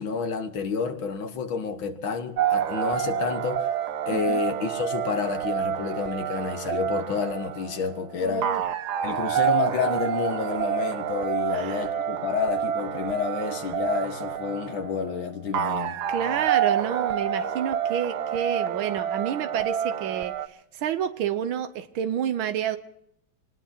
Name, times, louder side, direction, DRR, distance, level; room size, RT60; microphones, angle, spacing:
voice 1, 0.0-3.7 4.1-8.5 9.0-16.0, left 6 dB, 75° left, 2.2 m, -29 dB
sound 1, 2.4-20.5, right 9 dB, 60° right, 1.2 m, -28 dB
voice 2, 4.1-4.4 8.2-8.6 11.5-11.8 16.1-22.8, right 9 dB, 85° right, 1.7 m, -29 dB
26.5 x 19.5 x 2.8 m
omnidirectional pair, 2.2 m